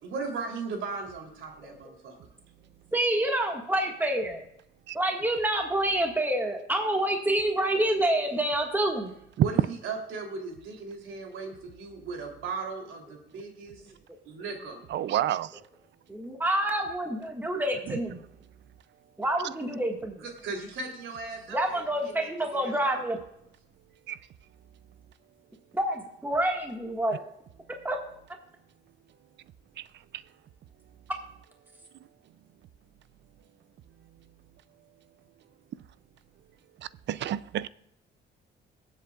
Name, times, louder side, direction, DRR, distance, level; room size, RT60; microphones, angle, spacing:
voice 1, 0.0-2.1 9.4-13.9 14.2-14.8 20.2-23.0, right 4 dB, 80° right, 3.2 m, -37 dB
voice 2, 2.9-4.5 4.9-9.1 13.8-13.9 16.1-18.2 19.2-20.2 21.5-23.2 25.7-27.2 27.8-28.0, right 1 dB, 10° right, 1.7 m, -27 dB
voice 3, 14.9-15.6 17.9-18.0 24.1-24.2 29.8-29.9 37.1-37.7, right 12 dB, 65° right, 0.5 m, -30 dB
22.0 x 8.0 x 2.4 m
cardioid pair, 90°, 20 cm